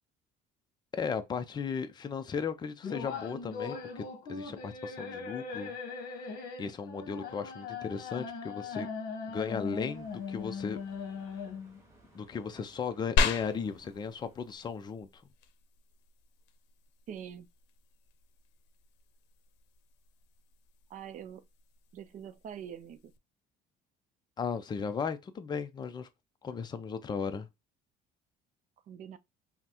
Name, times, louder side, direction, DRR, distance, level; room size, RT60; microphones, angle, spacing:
voice 1, 0.9-4.0 4.3-5.7 6.6-8.9 9.3-10.8 12.1-15.2 24.4-26.1 26.4-27.5, left 6 dB, 25° left, 0.5 m, -36 dB
sound 1, 2.8-11.8, left 5 dB, 55° left, 1.1 m, -40 dB
sound 2, 9.5-14.7, right 1 dB, 15° right, 1.2 m, -61 dB
sound 3, 13.2-23.2, left 4 dB, 80° left, 0.7 m, -38 dB
voice 2, 17.1-17.5 20.9-21.4 21.9-23.1 28.9-29.2, right 8 dB, 45° right, 0.5 m, -44 dB
5.6 x 2.1 x 2.9 m
cardioid pair, 150°, 18 cm